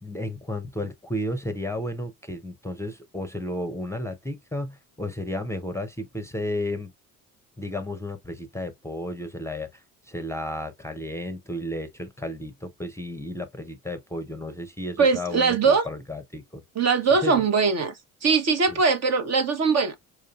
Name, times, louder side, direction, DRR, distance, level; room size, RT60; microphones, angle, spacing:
voice 1, 0.0-6.9 7.6-16.6 17.1-17.3 18.7-18.8, left 1 dB, 5° left, 0.7 m, -33 dB
voice 2, 15.0-15.8 16.8-17.9 18.2-20.0, right 5 dB, 40° right, 0.9 m, -21 dB
4.6 x 2.5 x 2.4 m
hypercardioid pair, 60°, 39 cm